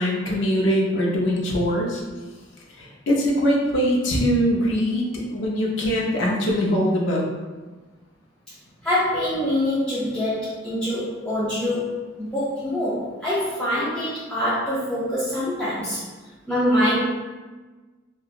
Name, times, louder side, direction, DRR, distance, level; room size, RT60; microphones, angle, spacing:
voice 1, 0.0-2.0 2.7-7.2, equal, 70° left, -2 dB, 0.6 m, -22 dB
voice 2, 8.8-16.0 16.5-17.0, left 1 dB, 5° left, -11 dB, 0.4 m, -24 dB
2.8 x 2.2 x 2.4 m, 1.3 s
head